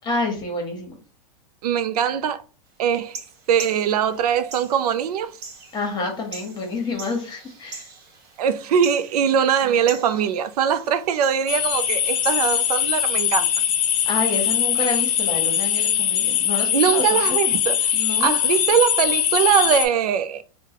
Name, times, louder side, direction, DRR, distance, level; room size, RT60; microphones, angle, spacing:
voice 1, 0.0-1.0 5.7-7.9 14.1-17.2 17.9-18.3, left 3 dB, 20° left, 1.1 m, -28 dB
voice 2, 1.6-2.4 2.8-3.2 3.5-5.4 8.4-13.5 16.7-20.4, right 8 dB, 90° right, 0.4 m, -21 dB
sound 1, 2.9-13.0, right 4 dB, 45° right, 1.2 m, -42 dB
sound 2, 11.5-19.9, left 9 dB, 70° left, 0.6 m, -21 dB
3.8 x 2.2 x 2.8 m
supercardioid pair, 140°, 19 cm